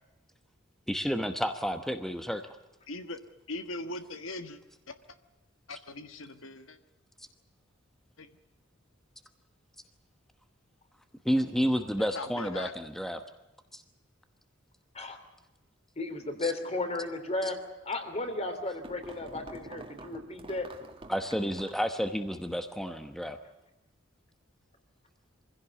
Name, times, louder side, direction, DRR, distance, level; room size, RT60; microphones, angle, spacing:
voice 1, 0.9-2.4 11.2-13.2 13.7-13.8 16.4-16.5 17.4-17.5 21.1-23.4, equal, ahead, 7 dB, 1.0 m, -30 dB
voice 2, 2.9-3.2 3.5-4.6 4.9-5.0 5.7-6.8 8.2-8.3 12.0-12.7, left 2 dB, 85° left, 9 dB, 1.5 m, -40 dB
voice 3, 16.0-17.5 17.9-20.7, left 2 dB, 35° left, 7 dB, 3.2 m, -34 dB
sound 1, 18.2-21.9, right 2 dB, 30° right, 2.1 m, -48 dB
24.5 x 16.5 x 8.3 m, 1.0 s
head